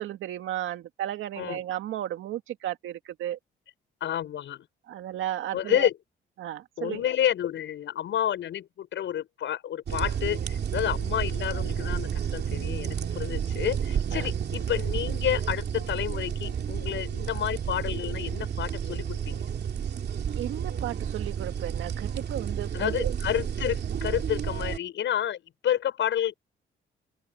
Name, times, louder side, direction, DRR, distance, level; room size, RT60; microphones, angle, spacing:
voice 1, 0.0-3.4 4.9-5.9 6.4-7.0 14.1-14.3 20.4-23.1, right 12 dB, 80° right, 2.2 m, -34 dB
voice 2, 4.0-4.7 5.5-6.0 6.8-19.4 22.7-26.4, left 10 dB, 70° left, 6.3 m, -30 dB
sound 1, 9.9-24.8, right 8 dB, 55° right, 2.7 m, -31 dB
open air
cardioid pair, 90°, 20 cm